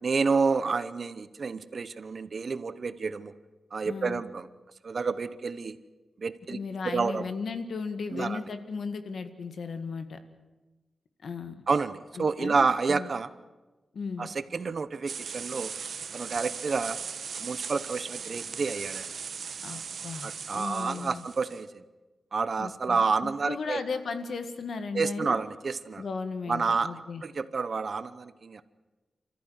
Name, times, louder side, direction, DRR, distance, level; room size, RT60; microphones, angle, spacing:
voice 1, 0.0-3.3 3.7-4.5 4.8-5.8 6.2-6.6 6.8-7.3 8.1-8.4 11.7-13.3 14.2-15.7 16.1-17.0 17.3-19.1 20.2-21.8 22.3-23.8 24.9-26.0 26.5-26.9 27.2-28.6, right 4 dB, 45° right, 14 dB, 0.9 m, -29 dB
voice 2, 3.8-4.2 6.5-10.2 11.2-11.6 12.2-13.1 13.9-14.3 19.6-21.2 22.6-25.4 26.0-27.2, left 4 dB, 65° left, 9 dB, 1.9 m, -36 dB
sound 1, 15.1-21.6, right 6 dB, 70° right, 1.1 m, -38 dB
27.5 x 14.5 x 9.5 m, 1.2 s
wide cardioid pair, 150°, 0 cm